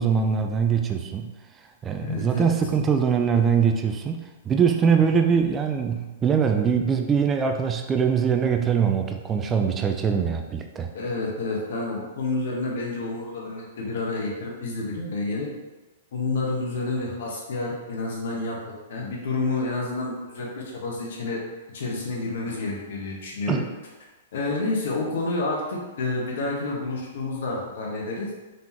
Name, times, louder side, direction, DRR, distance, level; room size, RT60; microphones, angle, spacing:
voice 1, 0.0-1.3 1.8-10.9 23.5-23.7, right 6 dB, 20° right, 5 dB, 0.4 m, -22 dB
voice 2, 2.0-2.5 10.9-15.5 16.1-21.4 21.7-23.7 24.3-28.3, left 3 dB, 65° left, -2 dB, 1.2 m, -29 dB
3.9 x 3.5 x 3.0 m, 1.2 s
hypercardioid pair, 115°, 0 cm